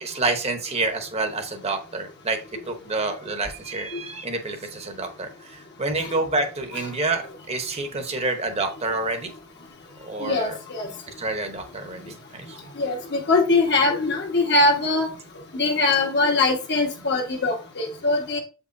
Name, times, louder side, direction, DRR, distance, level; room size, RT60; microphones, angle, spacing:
voice 1, 0.0-2.4 2.7-7.2 7.5-9.3 10.0-10.6 11.2-12.6, right 3 dB, 30° right, 6 dB, 1.0 m, -28 dB
voice 2, 10.2-10.9 12.8-15.1 15.5-18.4, left 3 dB, 55° left, 1 dB, 1.4 m, -22 dB
7.4 x 5.4 x 2.7 m, 0.35 s
head